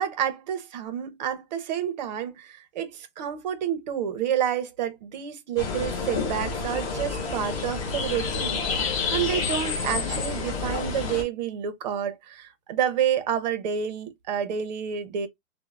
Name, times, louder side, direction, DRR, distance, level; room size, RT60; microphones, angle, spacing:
voice 1, 0.0-15.3, right 9 dB, 40° right, 0.5 m, -29 dB
sound 1, 5.6-11.2, left 5 dB, 30° left, 0.7 m, -29 dB
3.0 x 2.0 x 2.3 m
hypercardioid pair, 170°, 36 cm